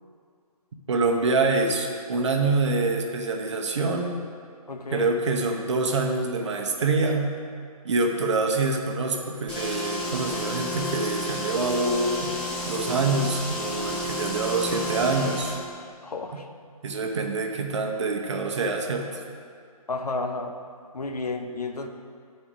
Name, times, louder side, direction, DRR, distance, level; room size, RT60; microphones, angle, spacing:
voice 1, 0.9-4.2 4.9-7.3 7.8-12.4 12.7-15.6 16.8-19.2, right 3 dB, 50° right, 2 dB, 0.9 m, -26 dB
voice 2, 4.7-5.1 16.0-16.5 19.9-20.6 20.9-21.9, left 3 dB, 85° left, 5 dB, 0.8 m, -31 dB
sound 1, 9.5-15.6, equal, 5° left, 0.4 m, -31 dB
9.7 x 4.2 x 5.0 m, 2.2 s
figure-of-eight pair, 150°, 19 cm